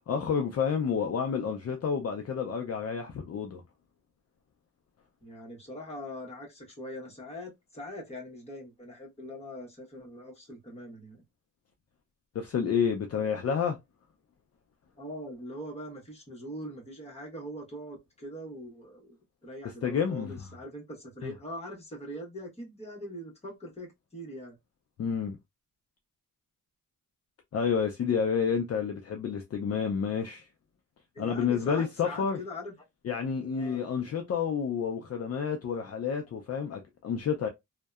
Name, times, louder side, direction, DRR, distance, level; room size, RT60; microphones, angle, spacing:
voice 1, 0.1-3.6 12.3-13.8 19.8-20.5 21.2-21.3 25.0-25.4 27.5-30.5 31.2-32.4 33.0-37.5, left 6 dB, 50° left, 0.4 m, -29 dB
voice 2, 5.2-11.2 15.0-24.6 31.1-32.7 33.5-33.8, equal, 20° left, 1.0 m, -42 dB
2.6 x 2.1 x 2.3 m
wide cardioid pair, 170°, 33 cm